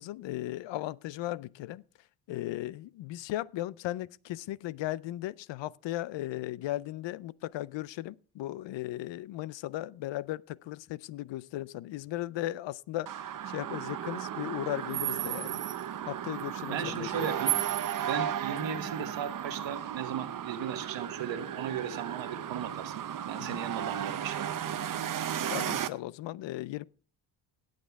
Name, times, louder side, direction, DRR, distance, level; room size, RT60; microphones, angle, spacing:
voice 1, 0.0-1.8 2.3-13.1 13.5-15.6 16.1-17.3 23.5-23.6 25.5-26.8, left 15 dB, 75° left, 0.5 m, -36 dB
sound 1, 13.1-25.9, right 10 dB, 45° right, 0.7 m, -34 dB
voice 2, 16.7-17.6 18.1-22.9 23.2-24.6, right 7 dB, 80° right, 1.4 m, -36 dB
18.0 x 6.6 x 3.5 m
cardioid pair, 95°, 45 cm